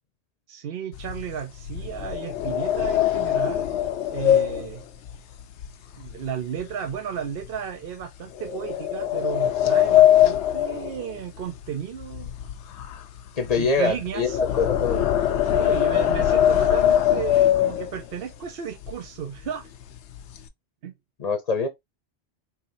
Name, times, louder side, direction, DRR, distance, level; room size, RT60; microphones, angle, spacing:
voice 1, 0.5-4.8 6.0-12.3 13.6-14.4 15.4-19.7 20.8-20.9, right 8 dB, 60° right, 0.8 m, -34 dB
sound 1, 0.9-6.3 6.6-6.9 7.4-7.6 8.4-11.7 12.0-18.2 18.8-18.9 19.2-19.5 19.8-20.5, left 11 dB, 85° left, 0.9 m, -22 dB
voice 2, 13.4-15.1 21.2-21.7, left 4 dB, 40° left, 0.7 m, -24 dB
4.8 x 3.1 x 2.6 m
omnidirectional pair, 1.1 m